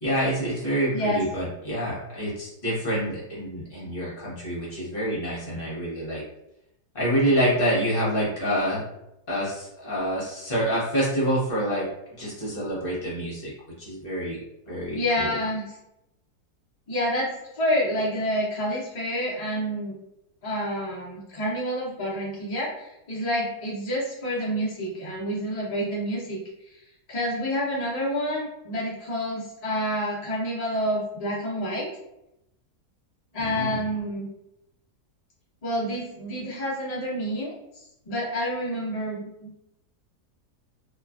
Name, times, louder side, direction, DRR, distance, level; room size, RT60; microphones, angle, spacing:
voice 1, 0.0-6.2 6.9-8.8 9.3-11.9 12.2-13.5 13.8-14.4 14.7-15.4 33.4-33.8, equal, 40° left, -7 dB, 1.1 m, -27 dB
voice 2, 0.9-1.2 14.9-15.7 16.9-19.9 20.4-26.4 27.1-31.9 33.3-34.3 35.6-39.5, equal, 60° left, -6 dB, 0.4 m, -28 dB
2.9 x 2.4 x 2.3 m, 0.85 s
omnidirectional pair, 1.7 m